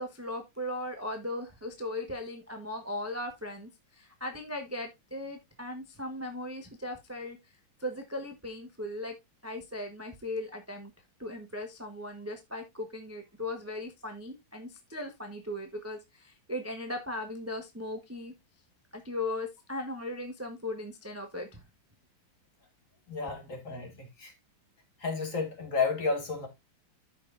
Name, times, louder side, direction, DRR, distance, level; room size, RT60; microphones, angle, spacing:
voice 1, 0.0-7.4 7.8-9.1 9.4-10.9 11.2-18.3 18.9-21.6, left 1 dB, 10° right, 0.8 m, -38 dB
voice 2, 23.1-24.3 25.0-26.5, left 4 dB, 45° left, 2.3 m, -32 dB
13.0 x 5.6 x 2.5 m
omnidirectional pair, 2.1 m